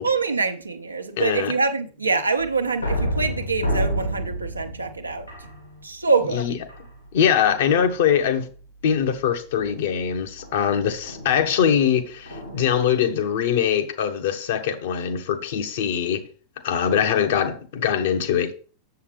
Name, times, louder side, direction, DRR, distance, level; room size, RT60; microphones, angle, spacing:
voice 1, 0.0-6.6, right 4 dB, 80° right, 0.8 m, -25 dB
voice 2, 1.2-1.5 6.3-6.6 7.1-8.5 8.8-16.2 16.6-18.5, left 8 dB, 55° left, 0.9 m, -22 dB
sound 1, 2.4-6.1 6.7-7.2 7.7-8.1 9.5-12.9, equal, 90° left, 2.4 m, -30 dB
7.2 x 6.7 x 3.4 m
figure-of-eight pair, 90°, 0 cm